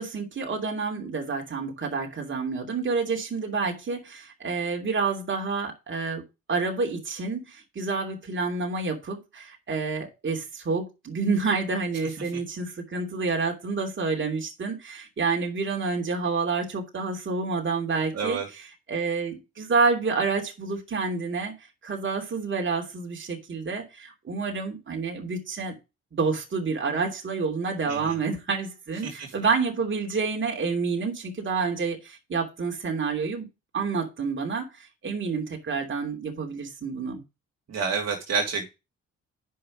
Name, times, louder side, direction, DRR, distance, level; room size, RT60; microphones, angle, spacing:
voice 1, 0.0-6.2 6.5-18.4 18.9-21.5 21.8-25.7 26.2-33.5 33.7-34.7 35.0-37.2, right 4 dB, 40° right, 3.0 m, -28 dB
voice 2, 18.1-18.5 27.9-28.2 29.0-29.3 37.7-38.7, right 5 dB, 60° right, 2.9 m, -29 dB
8.4 x 5.8 x 5.0 m
cardioid pair, 90°, 30 cm